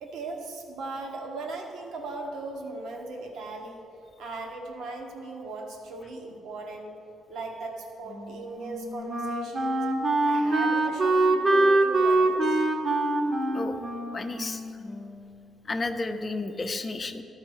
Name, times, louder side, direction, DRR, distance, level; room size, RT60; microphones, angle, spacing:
voice 1, 0.0-3.8 4.2-6.9 7.3-9.8 10.2-12.7, right 3 dB, 80° right, 1 dB, 1.2 m, -38 dB
Wind instrument woodwind instrument, 8.1-15.4, right 2 dB, 40° right, 0.9 m, -25 dB
voice 2, 14.1-14.6 15.6-17.2, left 3 dB, 30° left, 7 dB, 0.6 m, -32 dB
12.5 x 4.8 x 4.7 m, 3.0 s
cardioid pair, 90°, 0 cm